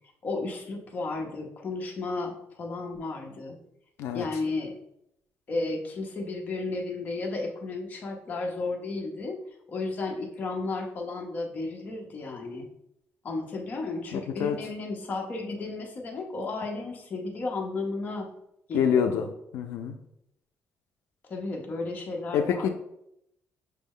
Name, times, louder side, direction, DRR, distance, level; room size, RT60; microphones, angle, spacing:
voice 1, 0.2-3.6 4.1-4.7 5.5-9.4 9.7-12.7 13.2-18.3 18.7-19.3 21.3-22.7, left 3 dB, 35° left, 1 dB, 0.7 m, -33 dB
voice 2, 14.1-14.6 18.7-19.3 19.5-20.0 22.3-22.7, left 8 dB, 85° left, 6 dB, 0.4 m, -26 dB
6.0 x 2.0 x 3.6 m, 0.78 s
cardioid pair, 175°, 5 cm